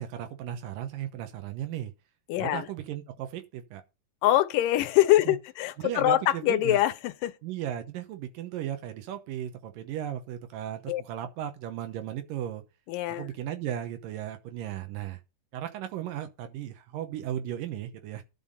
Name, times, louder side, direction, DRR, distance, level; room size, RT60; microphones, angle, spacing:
voice 1, 0.0-1.9 2.4-3.8 5.3-5.4 5.8-6.8 7.4-12.6 13.1-15.2 15.5-18.2, right 11 dB, 85° right, 2.7 m, -36 dB
voice 2, 2.3-2.7 4.2-7.4 10.9-11.0 12.9-13.3, left 14 dB, 85° left, 2.4 m, -24 dB
11.5 x 5.7 x 5.2 m
omnidirectional pair, 3.8 m